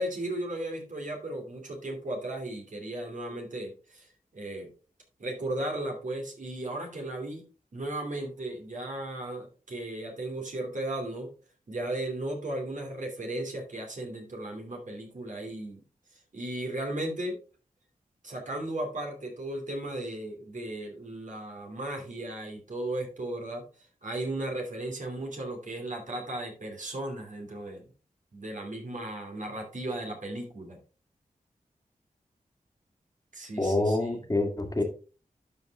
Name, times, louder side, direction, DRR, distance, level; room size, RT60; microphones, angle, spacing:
voice 1, 0.0-4.7 5.2-7.4 7.7-11.3 11.7-15.8 16.1-17.4 18.2-23.6 24.0-27.8 28.3-30.8 33.3-34.1, right 1 dB, 60° right, 1 dB, 2.7 m, -35 dB
voice 2, 33.6-34.8, left 2 dB, 25° left, 4 dB, 1.9 m, -26 dB
12.0 x 5.2 x 3.5 m, 0.36 s
wide cardioid pair, 70°, 14 cm